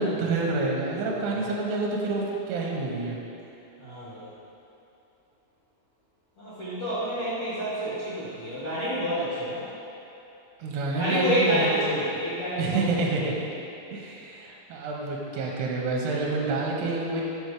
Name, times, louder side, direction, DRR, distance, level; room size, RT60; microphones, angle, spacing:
voice 1, 0.0-3.2 10.6-11.7 12.6-13.3 13.9-17.2, right 3 dB, 85° right, -2 dB, 2.7 m, -28 dB
voice 2, 1.1-1.5 3.8-4.3 6.4-9.7 11.0-13.3, equal, 50° left, -15 dB, 1.7 m, -29 dB
6.8 x 6.5 x 3.3 m, 2.9 s
omnidirectional pair, 4.7 m